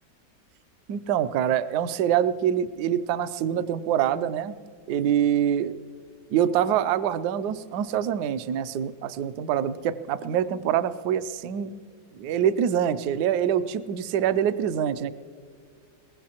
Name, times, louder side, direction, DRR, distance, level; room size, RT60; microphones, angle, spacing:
voice 1, 0.9-4.5 4.9-5.8 6.3-11.7 12.2-15.1, right 9 dB, 70° right, 13 dB, 1.1 m, -25 dB
23.0 x 20.5 x 2.9 m, 2.2 s
omnidirectional pair, 2.0 m